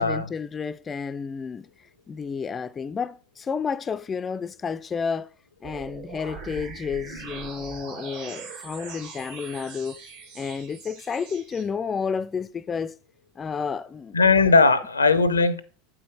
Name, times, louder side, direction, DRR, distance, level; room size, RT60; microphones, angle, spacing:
voice 1, 0.0-5.3 5.6-10.0 10.3-13.0 13.4-14.2, left 6 dB, 25° left, 0.3 m, -31 dB
sound 1, 5.6-11.6, right 5 dB, 70° right, 2.8 m, -41 dB
voice 2, 14.1-15.6, left 4 dB, 90° left, 0.6 m, -18 dB
8.5 x 5.0 x 4.5 m
hypercardioid pair, 80°, 0 cm